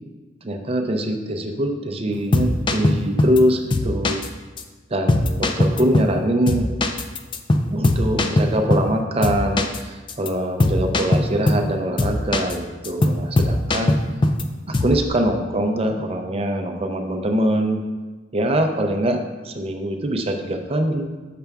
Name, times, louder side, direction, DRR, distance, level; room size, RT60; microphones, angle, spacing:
voice 1, 0.4-4.2 4.9-6.7 7.7-14.0 14.7-17.8 18.3-21.2, right 1 dB, 30° right, 5 dB, 0.5 m, -23 dB
sound 1, 2.1-3.4 3.7-4.3 4.6-4.7 5.1-6.2 6.5-9.0 9.2-9.8 10.1-10.3 10.6-11.7 12.0-12.6 12.8-14.4 14.7-15.0, left 1 dB, 25° left, 0.4 m, -20 dB
6.7 x 5.8 x 3.5 m, 1.3 s
head